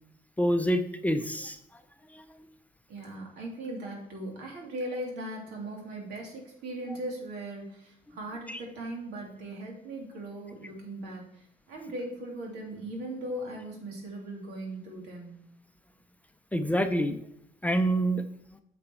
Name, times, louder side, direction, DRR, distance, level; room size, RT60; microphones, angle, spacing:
voice 1, 0.4-1.6 2.1-2.3 8.5-8.6 16.5-17.2 17.6-18.2, right 1 dB, 10° left, 7 dB, 0.6 m, -27 dB
voice 2, 2.9-15.3, right 1 dB, 80° right, -1 dB, 3.1 m, -39 dB
8.5 x 6.0 x 4.6 m, 0.73 s
cardioid pair, 110°, 17 cm